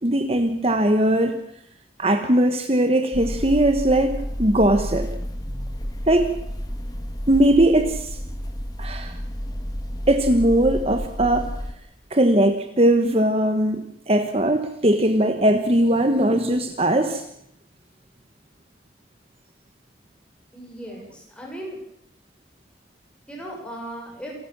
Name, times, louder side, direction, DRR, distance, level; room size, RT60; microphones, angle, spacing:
voice 1, 0.0-1.4 2.0-5.1 6.1-6.3 7.3-8.2 8.8-9.2 10.1-11.5 12.1-17.2, right 1 dB, 35° right, 7 dB, 1.4 m, -20 dB
sound 1, 3.1-11.7, equal, 20° left, 2.0 m, -31 dB
voice 2, 20.5-21.8 23.3-24.4, right 1 dB, 5° left, -1 dB, 7.6 m, -37 dB
28.0 x 14.0 x 7.4 m, 0.74 s
head